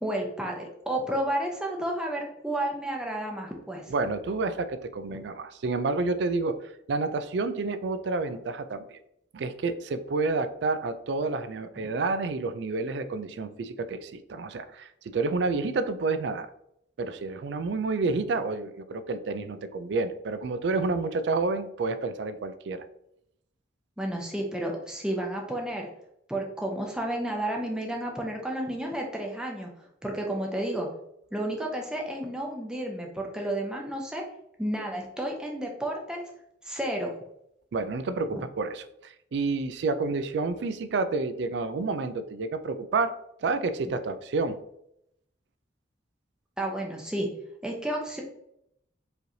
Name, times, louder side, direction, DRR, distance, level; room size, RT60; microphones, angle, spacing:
voice 1, 0.0-3.9 5.1-5.2 11.8-11.9 24.0-25.9 26.3-29.7 30.0-30.9 31.3-34.2 34.6-36.2 36.6-37.1 38.3-38.4 46.6-47.3 47.6-48.2, right 1 dB, 5° right, 0 dB, 0.7 m, -31 dB
voice 2, 3.9-9.0 9.3-16.5 17.0-22.9 37.7-43.1 43.4-44.6, right 3 dB, 60° right, 11 dB, 0.4 m, -29 dB
4.8 x 3.2 x 2.7 m, 0.77 s
head